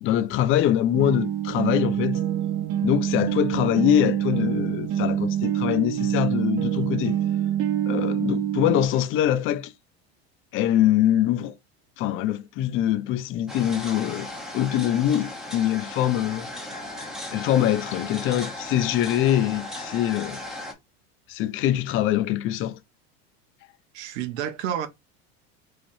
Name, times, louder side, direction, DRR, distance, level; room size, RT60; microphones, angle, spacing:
voice 1, 0.0-2.2 2.8-7.2 7.9-9.7 10.5-11.5 12.0-14.3 14.5-16.5 17.3-20.4 21.3-22.8, left 11 dB, 40° left, 0.5 m, -23 dB
sound 1, 0.9-8.9, right 11 dB, 50° right, 0.9 m, -26 dB
sound 2, 13.5-20.7, left 1 dB, ahead, 0.8 m, -36 dB
voice 2, 23.9-24.9, right 10 dB, 85° right, 0.9 m, -29 dB
3.8 x 3.3 x 2.6 m
supercardioid pair, 140°, 33 cm